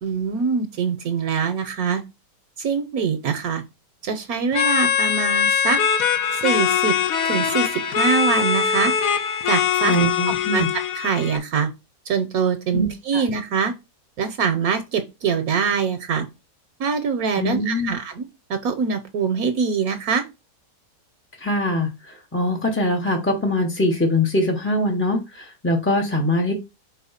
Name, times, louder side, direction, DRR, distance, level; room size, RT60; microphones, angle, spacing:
voice 1, 0.0-2.0 2.6-3.6 4.0-5.8 6.3-6.9 7.2-8.9 9.5-10.0 10.3-10.6 10.9-11.7 12.1-13.7 14.2-16.3 16.8-18.2 18.5-20.2, right 6 dB, 65° right, 9 dB, 1.1 m, -23 dB
sound 1, 4.5-11.4, left 7 dB, 65° left, 1.0 m, -22 dB
voice 2, 9.8-10.7 12.7-13.2 17.4-17.9 21.4-21.9 22.3-26.5, left 1 dB, 10° left, 0 dB, 0.6 m, -22 dB
4.4 x 4.3 x 5.6 m, 0.26 s
omnidirectional pair, 1.8 m